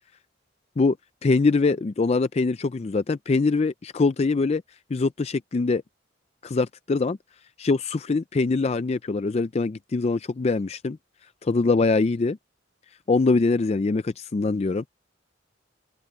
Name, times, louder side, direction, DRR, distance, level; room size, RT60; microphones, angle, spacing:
voice 1, 1.2-4.6 4.9-5.8 6.4-7.2 7.6-11.0 11.4-12.4 13.1-14.8, left 3 dB, 35° left, 0.4 m, -23 dB
open air
head